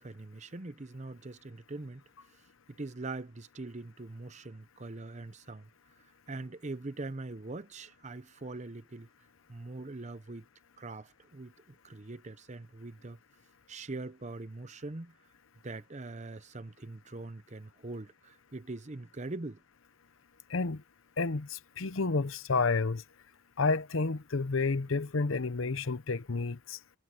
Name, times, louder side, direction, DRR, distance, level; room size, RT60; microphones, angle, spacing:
voice 1, 0.0-2.0 2.8-5.7 6.3-9.1 9.5-10.5 10.8-13.2 13.7-15.2 15.6-19.6, right 2 dB, 35° right, 0.8 m, -42 dB
voice 2, 20.5-20.8 21.2-23.0 23.6-26.8, left 4 dB, 70° left, 0.8 m, -30 dB
head